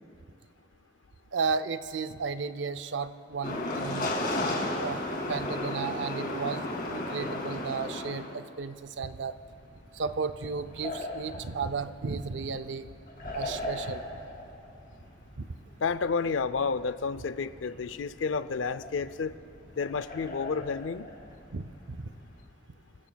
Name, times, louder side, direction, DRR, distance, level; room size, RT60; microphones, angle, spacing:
voice 1, 1.3-4.2 4.8-5.0 5.3-6.6 6.9-9.3 9.9-12.9 13.3-14.1 15.4-15.5 21.5-22.1, right 5 dB, 70° right, 12 dB, 0.5 m, -34 dB
sound 1, 3.4-8.4 9.2-22.4, left 1 dB, 50° left, 2.2 m, -36 dB
voice 2, 15.8-19.4 19.8-21.1, left 5 dB, 90° left, 14 dB, 0.5 m, -30 dB
25.5 x 16.0 x 2.3 m, 2.5 s
head